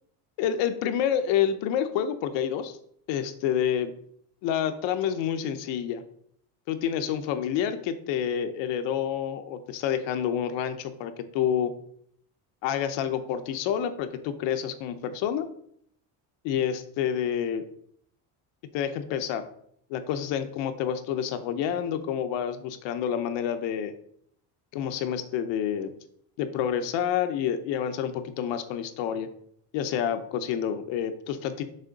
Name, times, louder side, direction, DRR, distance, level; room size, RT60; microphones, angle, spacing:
voice 1, 0.4-2.8 3.1-3.9 4.4-6.0 6.7-11.7 12.6-15.5 16.4-17.6 18.7-19.5 19.9-23.9 24.7-25.9 26.4-29.3 29.7-31.6, left 9 dB, 85° left, 9 dB, 0.9 m, -28 dB
6.6 x 3.6 x 5.2 m, 0.66 s
cardioid pair, 155°, 43 cm